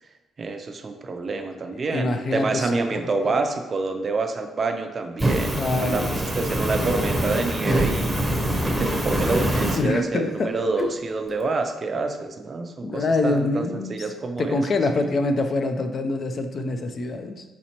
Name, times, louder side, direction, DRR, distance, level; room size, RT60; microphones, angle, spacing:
voice 1, 0.4-8.1 8.6-14.6, right 3 dB, 40° right, 5 dB, 0.4 m, -27 dB
voice 2, 1.7-3.3 5.5-6.2 9.7-10.9 12.8-13.9 14.4-17.4, left 2 dB, 45° left, 7 dB, 0.4 m, -25 dB
Fire, 5.2-9.8, right 1 dB, 5° right, 0.8 m, -24 dB
4.3 x 4.1 x 2.8 m, 1.1 s
cardioid pair, 90°, 0 cm